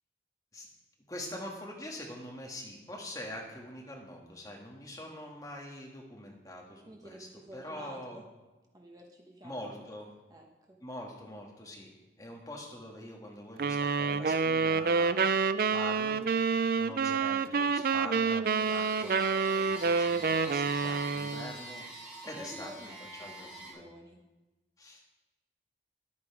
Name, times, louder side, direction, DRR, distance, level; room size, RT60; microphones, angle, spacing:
voice 1, 1.1-7.3 7.5-8.2 9.4-10.1 10.8-11.9 12.2-21.8 22.2-22.9 23.2-23.9 24.8-25.0, left 1 dB, 20° left, -1 dB, 1.6 m, -44 dB
voice 2, 6.9-8.2 8.7-9.7 10.3-10.8 22.4-23.0 23.3-24.2, right 1 dB, 20° right, 1 dB, 1.0 m, -50 dB
sound 1, 13.6-21.5, right 5 dB, 50° right, 0.3 m, -28 dB
sound 2, 18.4-23.7, right 2 dB, 5° right, 2.4 m, -45 dB
11.0 x 8.8 x 4.7 m, 1.1 s
head